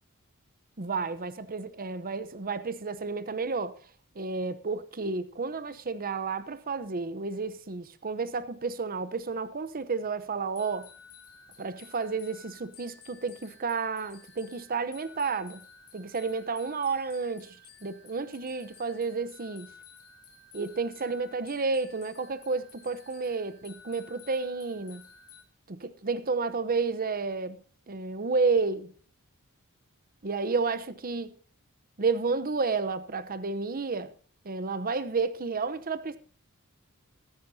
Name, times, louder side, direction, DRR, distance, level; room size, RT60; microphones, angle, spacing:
voice 1, 0.8-3.7 4.1-10.9 11.6-15.6 15.9-19.7 20.5-25.0 25.7-27.6 27.9-28.9 30.2-31.3 32.0-34.1 34.4-36.2, right 4 dB, 40° right, 0.8 m, -31 dB
sound 1, 10.6-25.4, left 5 dB, 70° left, 2.7 m, -53 dB
22.5 x 9.5 x 2.8 m
head